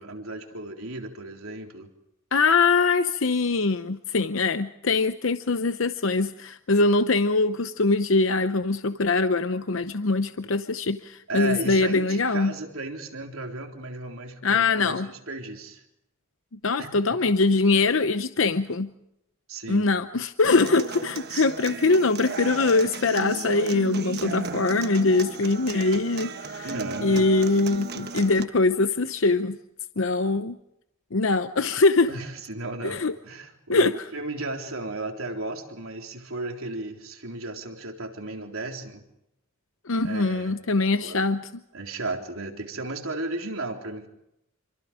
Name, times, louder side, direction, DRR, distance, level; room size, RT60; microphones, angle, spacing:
voice 1, 0.0-1.9 11.3-15.8 16.8-16.9 19.5-19.9 26.6-27.3 32.1-39.0 40.0-40.6 40.9-41.2 41.7-44.1, right 2 dB, 80° right, 2 dB, 3.9 m, -35 dB
voice 2, 2.3-12.5 14.4-15.1 16.6-18.9 19.7-26.7 27.0-29.6 30.0-30.6 31.1-32.1 32.8-33.1 33.7-34.0 39.9-41.5, left 3 dB, 65° left, 10 dB, 0.8 m, -23 dB
Human voice / Acoustic guitar, 20.4-28.4, right 4 dB, 50° right, 1.3 m, -35 dB
28.0 x 25.5 x 5.1 m, 0.81 s
head